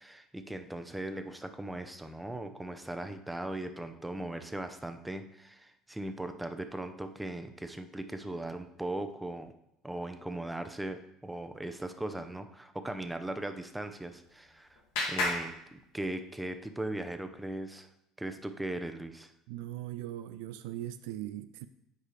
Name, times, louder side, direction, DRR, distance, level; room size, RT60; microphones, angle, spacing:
voice 1, 0.0-9.5 9.8-14.8 15.1-17.9 18.2-19.3, right 1 dB, 10° right, 0.7 m, -39 dB
Clapping, 13.8-16.5, left 2 dB, 75° left, 1.9 m, -36 dB
voice 2, 19.5-21.7, right 13 dB, 70° right, 0.3 m, -40 dB
9.2 x 4.8 x 3.2 m
hypercardioid pair, 70°, 0 cm